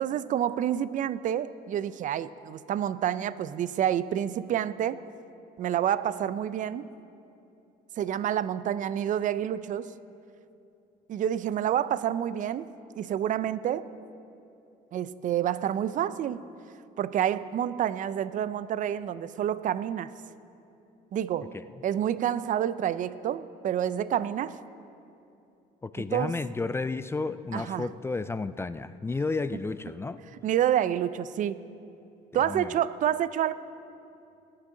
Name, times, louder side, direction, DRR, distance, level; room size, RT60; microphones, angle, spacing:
voice 1, 0.0-5.0 5.6-6.9 8.0-9.9 11.1-12.7 13.0-13.9 14.9-16.4 17.0-20.1 21.1-21.6 21.8-24.6 26.0-26.4 27.5-27.9 30.4-31.6 32.3-33.5, right 10 dB, 50° right, 16 dB, 0.5 m, -28 dB
voice 2, 25.8-30.2 32.3-32.7, left 3 dB, 15° left, 13 dB, 0.3 m, -32 dB
21.0 x 9.8 x 3.8 m, 2.7 s
cardioid pair, 110°, 17 cm